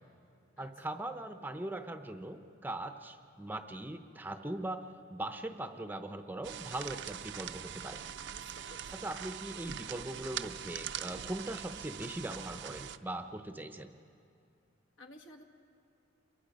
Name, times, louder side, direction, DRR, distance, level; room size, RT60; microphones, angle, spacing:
voice 1, 0.6-8.0 9.0-13.9, right 1 dB, 10° right, 7 dB, 0.7 m, -40 dB
sound 1, 6.4-13.0, right 9 dB, 60° right, 0.6 m, -42 dB
voice 2, 8.3-8.9 15.0-15.4, left 1 dB, 70° left, 4 dB, 1.9 m, -54 dB
28.5 x 23.0 x 5.2 m, 2.4 s
head